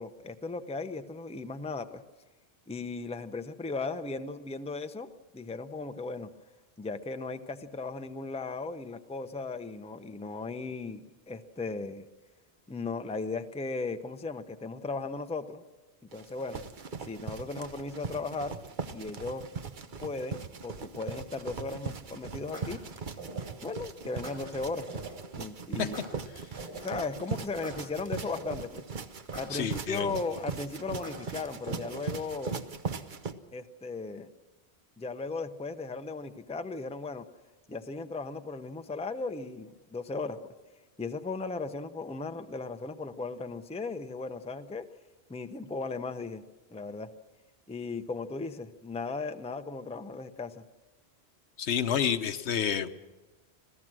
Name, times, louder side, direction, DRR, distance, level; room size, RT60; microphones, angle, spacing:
voice 1, 0.0-2.0 2.7-6.3 6.8-12.1 12.7-15.6 16.1-16.6 17.0-18.6 18.9-19.5 20.0-22.8 23.6-25.0 25.4-26.0 26.8-28.8 29.4-32.6 33.5-34.3 35.0-37.2 37.7-40.4 41.0-44.8 45.3-46.4 46.7-47.1 47.7-50.6, left 3 dB, 5° left, 8 dB, 0.6 m, -36 dB
sound 1, 16.1-33.3, right 5 dB, 50° right, 1.0 m, -40 dB
sound 2, 21.7-22.0 22.5-23.7 24.2-25.2 25.9-27.1 27.6-28.8 29.3-30.5 31.0-32.2, right 2 dB, 25° right, 4.9 m, -44 dB
voice 2, 29.5-30.1 51.6-53.0, left 8 dB, 80° left, 11 dB, 1.1 m, -29 dB
26.0 x 16.5 x 6.2 m, 1.2 s
omnidirectional pair, 1.1 m